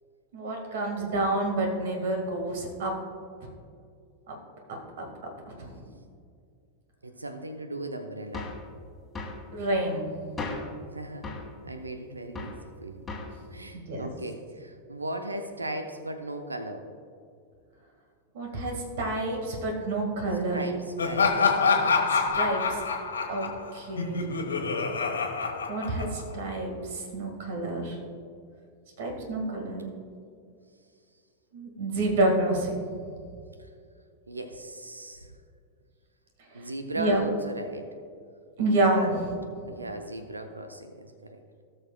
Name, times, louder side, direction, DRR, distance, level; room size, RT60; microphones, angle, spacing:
voice 1, 0.3-2.9 4.3-4.4 4.7-5.0 5.6-5.8 9.5-10.1 13.7-14.1 18.3-20.6 22.1-22.8 23.3-24.4 25.7-27.9 29.0-29.9 31.5-32.8 36.5-36.7 36.9-37.2 38.6-39.2 39.6-39.7, right 2 dB, 55° right, 2 dB, 1.6 m, -29 dB
voice 2, 7.0-8.5 10.9-13.1 13.5-16.9 20.5-21.5 27.5-27.7 34.3-35.3 36.5-37.9 38.9-39.1 39.7-41.4, right 1 dB, 80° right, 7 dB, 0.6 m, -37 dB
sound 1, 8.3-8.7 9.1-9.4 10.4-10.8 11.2-11.5 12.3-12.6 13.1-13.4, left 3 dB, 15° left, 1.7 m, -36 dB
Laughter, 21.0-26.4, left 5 dB, 70° left, 1.2 m, -26 dB
17.5 x 6.5 x 2.2 m, 2.3 s
figure-of-eight pair, 90°, 0 cm